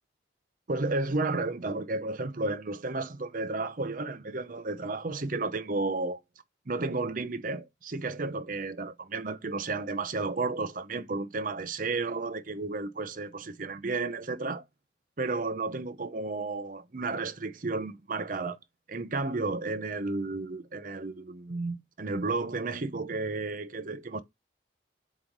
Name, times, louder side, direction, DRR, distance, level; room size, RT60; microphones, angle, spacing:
voice 1, 0.7-6.2 6.7-14.6 15.2-18.6 18.9-24.2, right 3 dB, 50° right, 0.7 m, -32 dB
7.6 x 3.1 x 5.3 m
head